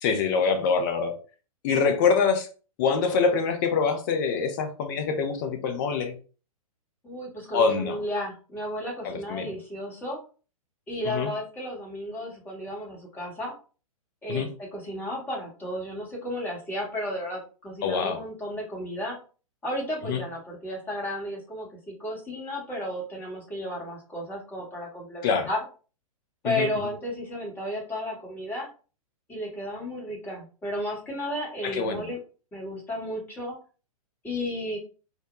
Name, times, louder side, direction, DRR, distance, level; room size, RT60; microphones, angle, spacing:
voice 1, 0.0-1.1 1.6-2.5 2.8-6.2 7.5-8.0 9.0-9.5 11.0-11.3 14.3-14.5 17.8-18.2 20.1-20.2 25.2-25.5 26.4-26.7 31.6-32.1, left 5 dB, 35° left, 7 dB, 0.5 m, -25 dB
voice 2, 7.0-10.2 10.9-13.5 14.2-19.2 19.6-25.6 26.4-28.7 29.3-32.2 32.5-33.6 34.2-34.8, left 1 dB, 10° left, -3 dB, 0.9 m, -33 dB
2.0 x 2.0 x 2.9 m, 0.36 s
figure-of-eight pair, 110°, 19 cm